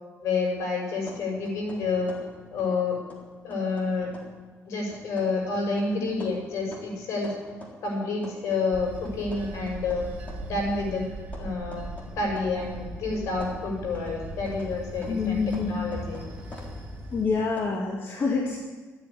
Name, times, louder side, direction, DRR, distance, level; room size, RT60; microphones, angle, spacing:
voice 1, 0.2-2.1 2.5-3.0 3.4-4.1 4.6-7.3 7.8-10.1 10.4-11.0 11.4-11.8 12.1-16.2, left 3 dB, 75° left, 0 dB, 6.5 m, -29 dB
sound 1, 1.0-2.8 3.1-4.4 4.9-8.7 9.0-12.8 13.1-17.7, left 2 dB, 25° left, 3.8 m, -47 dB
Bell / Train, 8.7-17.2, right 1 dB, 25° right, 3.0 m, -39 dB
voice 2, 15.1-15.9 17.1-18.6, left 4 dB, 45° left, -1 dB, 2.1 m, -27 dB
14.0 x 9.0 x 9.9 m, 1.4 s
cardioid pair, 115°, 5 cm